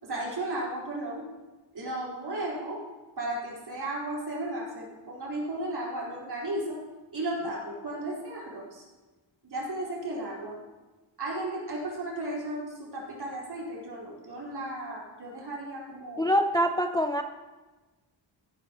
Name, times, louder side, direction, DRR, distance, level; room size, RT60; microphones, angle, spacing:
voice 1, 0.0-1.2 1.7-2.8 3.2-6.8 7.1-8.8 9.5-10.5 11.2-16.3, right 1 dB, 55° right, -5 dB, 4.4 m, -34 dB
voice 2, 16.2-17.2, equal, 10° left, 5 dB, 0.5 m, -24 dB
15.0 x 12.0 x 3.0 m, 1.2 s
wide cardioid pair, 120°, 46 cm